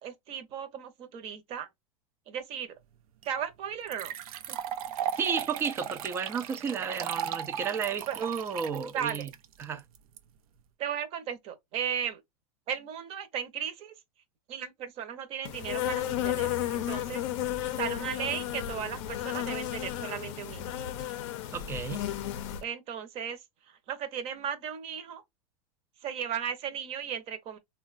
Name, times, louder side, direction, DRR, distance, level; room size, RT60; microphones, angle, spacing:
voice 1, 0.0-1.7 2.3-2.7 3.3-4.1 4.5-4.6 8.1-8.2 8.9-9.3 10.8-12.2 12.7-13.9 14.5-17.2 17.8-20.7 22.6-23.4 23.9-25.2 26.0-27.6, right 8 dB, 35° right, 0.8 m, -36 dB
sound 1, 3.2-3.3 3.9-10.2, right 9 dB, 80° right, 0.5 m, -36 dB
voice 2, 5.2-9.3 9.6-9.8 21.5-22.0, right 6 dB, 15° right, 0.3 m, -32 dB
Insect, 15.4-22.6, left 12 dB, 55° left, 0.5 m, -33 dB
3.6 x 2.2 x 2.4 m
supercardioid pair, 150°, 18 cm